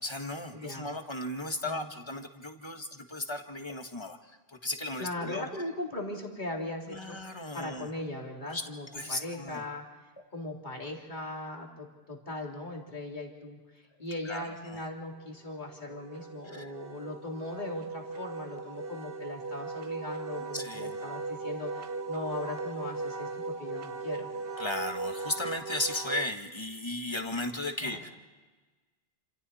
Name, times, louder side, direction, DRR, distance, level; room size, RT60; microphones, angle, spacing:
voice 1, 0.0-5.5 6.9-7.9 8.5-9.6 14.2-14.8 16.4-16.7 20.4-21.0 24.6-28.1, left 2 dB, 25° left, 5 dB, 1.6 m, -36 dB
voice 2, 0.5-0.9 1.6-1.9 5.0-9.8 10.3-13.6 14.0-24.3 27.8-28.0, left 1 dB, 45° left, -1 dB, 3.4 m, -39 dB
Wind instrument woodwind instrument, 15.3-26.3, right 3 dB, 65° right, 1.2 m, -38 dB
29.0 x 26.5 x 4.3 m, 1.3 s
omnidirectional pair, 1.1 m